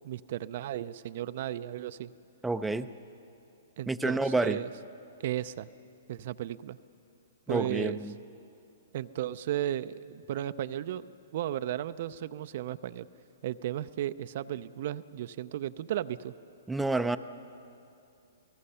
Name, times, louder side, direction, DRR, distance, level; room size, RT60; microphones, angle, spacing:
voice 1, 0.0-2.1 3.8-4.7 5.2-5.7 6.1-6.8 7.5-8.0 8.9-13.1 13.4-16.3, right 12 dB, 55° right, 12 dB, 0.5 m, -35 dB
voice 2, 2.4-2.9 3.9-4.6 7.5-8.1 16.7-17.2, right 2 dB, 5° right, 9 dB, 0.5 m, -29 dB
29.0 x 18.5 x 5.6 m, 2.7 s
hypercardioid pair, 130°, 0 cm